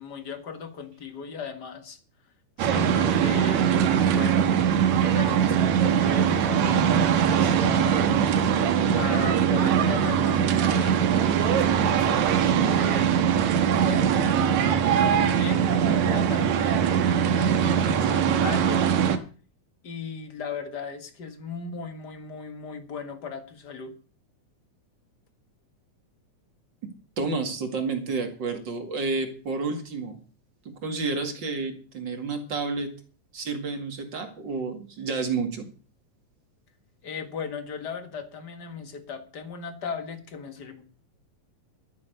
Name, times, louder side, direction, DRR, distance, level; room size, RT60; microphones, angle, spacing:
voice 1, 0.0-2.0 2.6-4.5 5.0-8.1 8.9-13.2 13.9-18.8 19.8-23.9 37.0-40.8, left 6 dB, 40° left, 8 dB, 1.9 m, -37 dB
sound 1, 2.6-19.2, right 8 dB, 70° right, 2.4 m, -22 dB
voice 2, 26.8-30.2 30.7-32.9 33.3-35.7, right 4 dB, 40° right, 6 dB, 2.4 m, -30 dB
13.0 x 9.3 x 6.7 m, 0.38 s
omnidirectional pair, 3.5 m